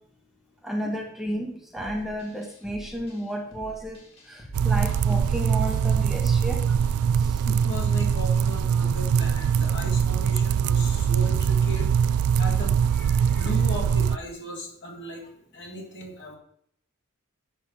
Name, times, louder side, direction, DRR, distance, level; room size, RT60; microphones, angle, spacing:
voice 1, 0.6-4.0 4.3-6.6 7.2-7.4, equal, ahead, 2 dB, 1.1 m, -32 dB
sound 1, 1.8-11.6, equal, 30° left, 2.5 m, -47 dB
sound 2, 4.5-14.2, right 7 dB, 85° right, 0.3 m, -22 dB
voice 2, 7.4-16.4, equal, 55° left, 0 dB, 2.9 m, -37 dB
8.5 x 5.8 x 6.8 m, 0.68 s
head